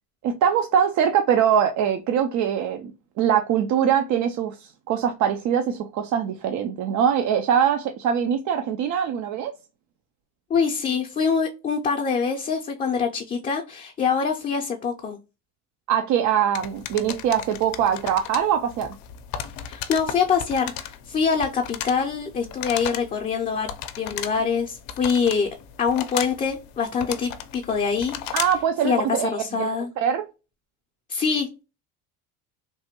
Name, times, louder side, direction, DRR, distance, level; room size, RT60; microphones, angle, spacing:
voice 1, 0.2-2.9 3.2-9.5 15.9-18.9 28.3-29.7 30.0-30.3, right 8 dB, 55° right, 0.5 m, -22 dB
voice 2, 10.5-15.2 19.7-23.7 24.0-25.5 25.8-28.3 28.8-29.0 29.3-29.9 31.1-31.6, left 6 dB, 25° left, 0.4 m, -24 dB
sound 1, 16.5-28.7, left 10 dB, 75° left, 0.5 m, -36 dB
3.2 x 2.1 x 2.8 m
cardioid pair, 115°, 35 cm